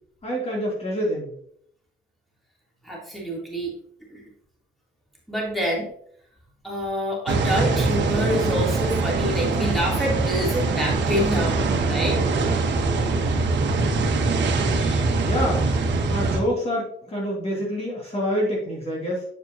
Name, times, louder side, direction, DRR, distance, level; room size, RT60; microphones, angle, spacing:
voice 1, 0.2-1.3 15.2-15.7 16.1-19.3, equal, 30° left, -4 dB, 2.9 m, -26 dB
voice 2, 2.8-3.7 4.1-4.2 5.3-5.9 6.6-12.2 14.7-15.0, equal, ahead, -4 dB, 3.4 m, -27 dB
sound 1, 7.3-16.4, right 3 dB, 65° right, 1.3 m, -23 dB
8.0 x 7.0 x 2.9 m, 0.66 s
cardioid pair, 90°, 20 cm